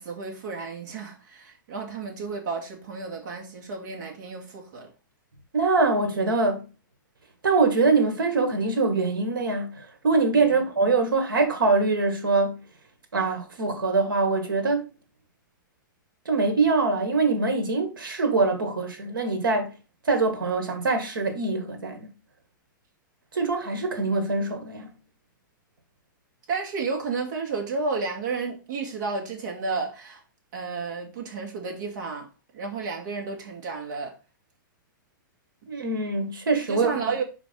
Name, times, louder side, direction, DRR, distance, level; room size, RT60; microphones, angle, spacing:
voice 1, 0.0-4.9 10.4-10.6 26.5-30.2 30.5-32.3 32.5-34.2 36.7-37.2, right 4 dB, 60° right, 2.5 m, -32 dB
voice 2, 5.5-6.7 7.4-12.6 13.1-14.9 16.3-19.7 20.0-22.1 23.3-24.9 35.7-36.9, right 3 dB, 90° right, 2.0 m, -23 dB
5.0 x 4.7 x 5.3 m
hypercardioid pair, 125°, 11 cm